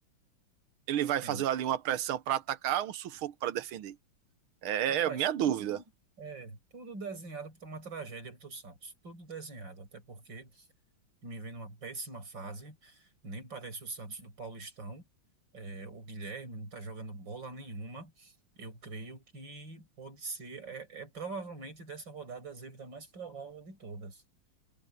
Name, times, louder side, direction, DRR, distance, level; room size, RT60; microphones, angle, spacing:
voice 1, 0.9-4.0 4.6-5.8, right 11 dB, 90° right, 1.8 m, -31 dB
voice 2, 4.9-5.8 6.2-10.7 11.2-15.0 15.5-24.2, right 3 dB, 60° right, 6.7 m, -43 dB
omnidirectional pair, 2.2 m